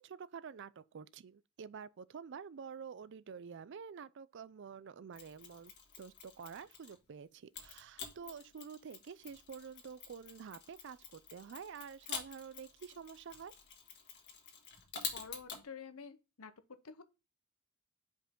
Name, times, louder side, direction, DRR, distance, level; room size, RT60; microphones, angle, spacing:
voice 1, 0.0-5.7 6.0-13.5, right 6 dB, 55° right, 0.4 m, -49 dB
Mechanisms, 5.1-7.0 7.5-15.6, left 6 dB, 50° left, 1.6 m, -48 dB
voice 2, 15.1-17.0, left 5 dB, 75° left, 0.8 m, -50 dB
5.6 x 5.0 x 3.7 m
head